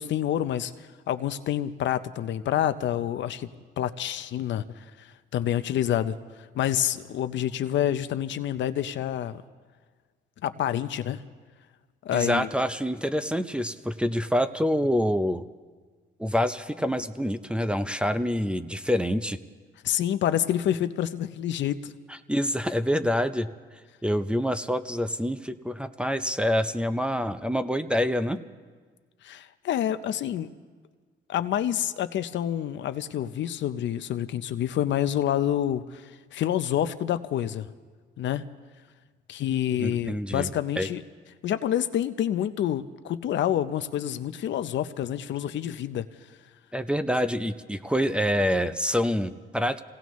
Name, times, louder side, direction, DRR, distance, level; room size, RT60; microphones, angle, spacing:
voice 1, 0.0-3.5 3.8-5.1 5.3-6.2 6.5-9.4 10.4-11.2 12.0-12.5 19.8-21.9 29.2-30.5 31.3-37.7 38.2-38.4 39.3-41.0 41.4-46.1, left 11 dB, 65° left, 12 dB, 0.6 m, -28 dB
voice 2, 12.1-15.4 16.2-19.4 22.1-23.5 24.0-28.4 39.8-40.5 40.8-40.9 46.7-49.8, equal, 5° right, 11 dB, 0.6 m, -26 dB
27.0 x 17.5 x 3.1 m, 1.5 s
cardioid pair, 90°, 20 cm